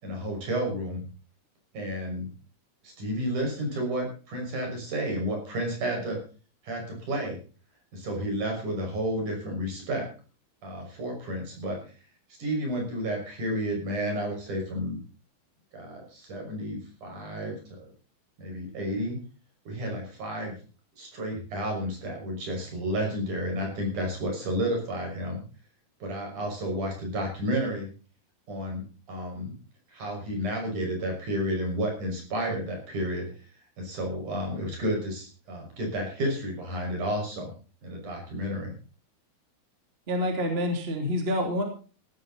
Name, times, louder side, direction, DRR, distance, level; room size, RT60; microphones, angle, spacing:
voice 1, 0.0-1.1 1.7-2.3 2.8-6.2 6.6-7.4 7.9-10.1 10.6-11.8 12.4-15.0 15.7-17.6 18.4-19.2 19.7-20.5 21.0-25.4 26.0-27.9 28.5-28.8 29.1-29.5 29.9-33.3 33.8-37.5 37.8-38.7, equal, 50° right, 2 dB, 7.4 m, -31 dB
voice 2, 40.1-41.6, left 1 dB, 15° right, 3 dB, 2.7 m, -27 dB
16.5 x 14.0 x 4.2 m, 0.37 s
omnidirectional pair, 4.5 m